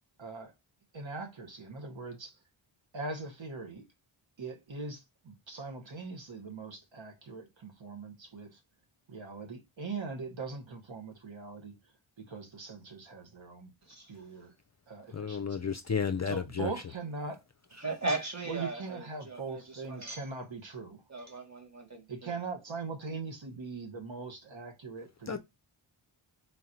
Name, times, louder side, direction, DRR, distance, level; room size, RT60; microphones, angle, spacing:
voice 1, 0.2-0.5 0.9-2.4 2.9-3.8 4.4-8.6 9.1-11.7 12.2-13.7 14.1-14.5 14.9-15.6 16.2-17.4 18.4-21.0 22.1-25.4, right 4 dB, 65° right, 1.3 m, -41 dB
voice 2, 13.8-14.3 17.8-20.2 21.1-22.4, right 3 dB, 35° right, 1.8 m, -38 dB
voice 3, 15.1-16.7 25.3-25.4, left 6 dB, 35° left, 0.5 m, -32 dB
4.0 x 2.6 x 4.3 m
wide cardioid pair, 60°, 50 cm